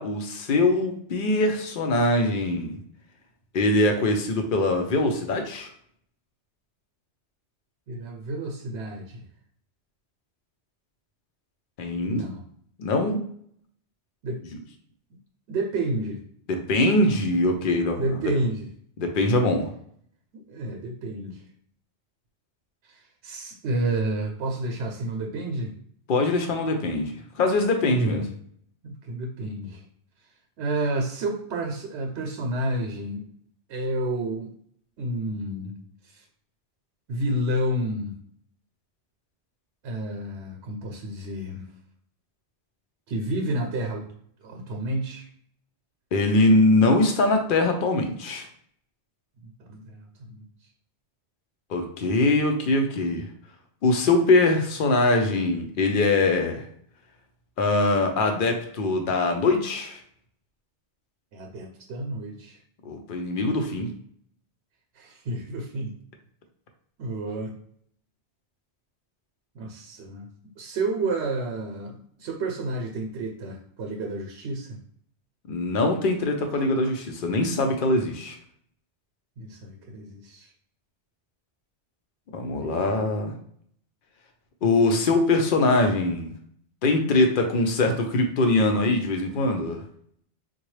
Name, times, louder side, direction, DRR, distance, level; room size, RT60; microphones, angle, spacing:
voice 1, 0.0-2.8 3.5-5.7 11.8-12.2 12.8-13.2 16.5-18.3 19.0-19.7 26.1-28.2 46.1-48.5 51.7-53.3 53.8-56.7 57.6-60.0 62.8-63.9 75.5-78.4 82.3-83.4 84.6-86.3 86.8-89.8, left 2 dB, 55° left, 5 dB, 0.7 m, -22 dB
voice 2, 7.9-9.2 12.0-12.4 14.2-14.4 15.5-16.2 17.9-18.7 20.3-21.4 22.8-25.7 27.9-28.3 28.8-29.8 30.6-33.3 33.7-34.5 35.0-35.8 36.1-36.2 37.1-38.2 39.8-41.6 43.1-44.1 44.4-45.3 49.4-50.4 61.3-62.6 65.0-65.9 67.0-67.6 69.5-70.3 70.6-74.8 79.4-80.5 82.4-83.0, right 1 dB, 80° right, 2 dB, 0.9 m, -30 dB
3.8 x 2.3 x 3.1 m, 0.64 s
omnidirectional pair, 1.1 m